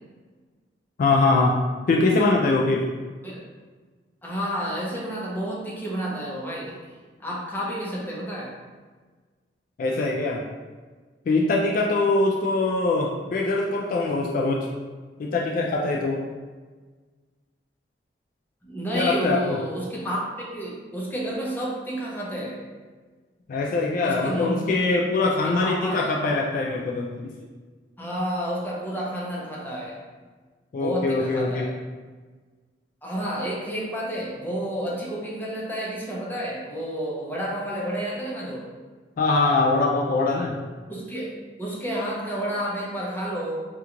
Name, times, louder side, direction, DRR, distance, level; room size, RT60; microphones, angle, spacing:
voice 1, 1.0-1.6 1.9-2.8 9.8-10.4 11.3-14.7 15.2-16.2 18.9-19.6 23.5-27.3 30.7-31.7 39.2-40.6, left 3 dB, 50° left, -2 dB, 0.3 m, -23 dB
voice 2, 4.2-6.7 7.2-8.5 18.6-20.2 20.5-22.6 24.0-24.6 24.9-26.1 28.0-30.0 30.8-31.7 33.0-38.7 40.9-41.3 41.6-43.6, right 1 dB, 10° left, -5 dB, 0.6 m, -30 dB
2.9 x 2.3 x 3.7 m, 1.4 s
head